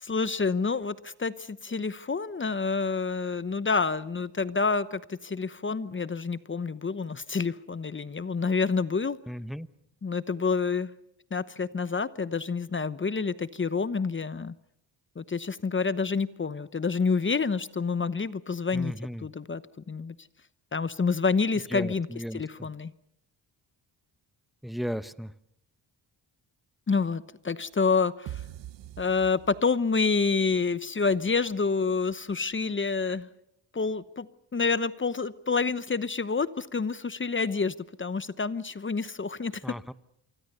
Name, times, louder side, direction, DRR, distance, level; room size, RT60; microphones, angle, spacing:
voice 1, 0.0-9.2 10.0-10.9 11.3-14.5 15.2-18.9 19.2-19.6 19.9-20.2 20.7-22.1 22.3-22.9 26.9-28.4 29.0-33.3 33.7-39.6, left 4 dB, 25° left, 16 dB, 1.0 m, -28 dB
voice 2, 9.3-9.7 18.7-19.3 21.7-22.7 24.6-25.3 39.6-39.9, equal, ahead, 14 dB, 0.9 m, -35 dB
sound 1, 28.3-30.1, right 12 dB, 75° right, 1.0 m, -42 dB
28.0 x 25.0 x 6.8 m, 0.75 s
cardioid pair, 90°, 44 cm